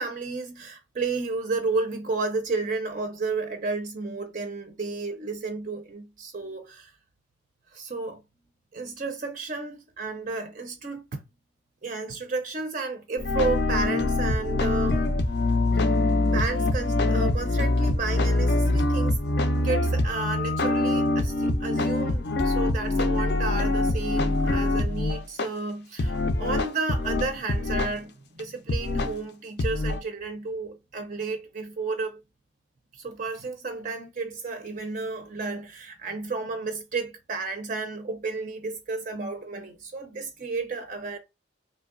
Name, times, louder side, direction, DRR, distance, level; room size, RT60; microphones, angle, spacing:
voice 1, 0.0-6.9 7.7-8.2 8.7-11.2 11.8-15.0 16.3-19.2 19.6-32.2 32.9-41.2, right 3 dB, 40° right, 0.4 m, -32 dB
sound 1, 13.2-25.5 26.0-28.0 28.4-28.5 28.7-29.2 29.6-30.0, left 2 dB, 55° left, 0.4 m, -24 dB
3.0 x 2.6 x 2.4 m
head